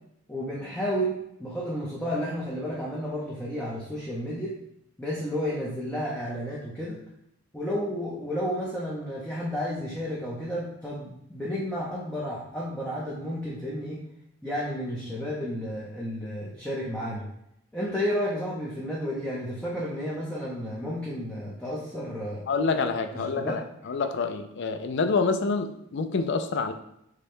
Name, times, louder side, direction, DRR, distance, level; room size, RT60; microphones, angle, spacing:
voice 1, 0.3-4.5 5.0-7.0 7.5-14.0 14.4-17.3 17.7-22.4 23.3-23.6, equal, 5° left, -6 dB, 0.6 m, -32 dB
voice 2, 22.5-23.6 23.9-26.7, left 4 dB, 50° left, 7 dB, 0.4 m, -27 dB
6.5 x 2.2 x 3.6 m, 0.77 s
head